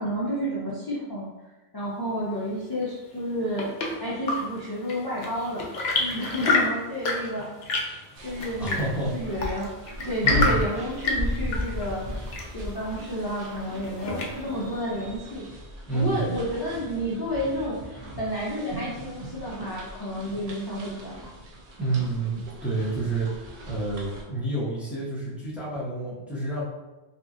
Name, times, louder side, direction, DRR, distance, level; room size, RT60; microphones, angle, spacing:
voice 1, 0.0-1.3 1.7-3.7 4.0-5.7 6.0-7.9 8.2-8.9 9.1-9.7 10.0-15.4 15.9-21.3, equal, 35° left, -7 dB, 0.3 m, -31 dB
Chirp tweet / Engine / Tap, 3.1-14.7, left 3 dB, 70° left, 0.8 m, -30 dB
sound 1, 8.1-24.2, equal, 50° right, 0.5 m, -37 dB
voice 2, 8.6-9.1 10.2-10.6 15.9-16.3 21.8-26.6, right 2 dB, ahead, -8 dB, 0.6 m, -29 dB
2.8 x 2.5 x 2.5 m, 1.1 s
omnidirectional pair, 1.1 m